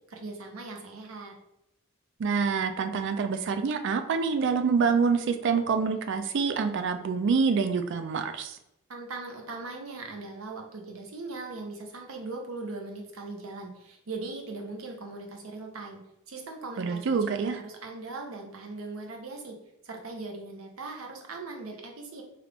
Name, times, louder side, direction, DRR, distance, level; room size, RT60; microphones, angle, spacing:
voice 1, 0.1-1.3 8.9-16.0 16.3-19.6 19.8-22.2, right 3 dB, 85° right, 2 dB, 0.7 m, -39 dB
voice 2, 2.2-8.6 16.8-17.6, right 5 dB, 60° right, 8 dB, 0.4 m, -26 dB
3.1 x 2.4 x 3.3 m, 0.83 s
head